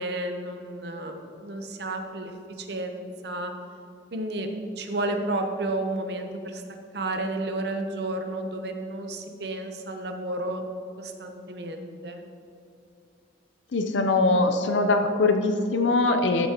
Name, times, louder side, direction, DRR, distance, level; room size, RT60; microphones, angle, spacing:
voice 1, 0.0-3.5 4.1-6.6 6.9-10.6 11.0-12.2, right 2 dB, 65° right, 5 dB, 0.8 m, -32 dB
voice 2, 13.7-16.5, left 3 dB, 85° left, 6 dB, 0.6 m, -22 dB
13.0 x 7.0 x 2.9 m, 2.5 s
head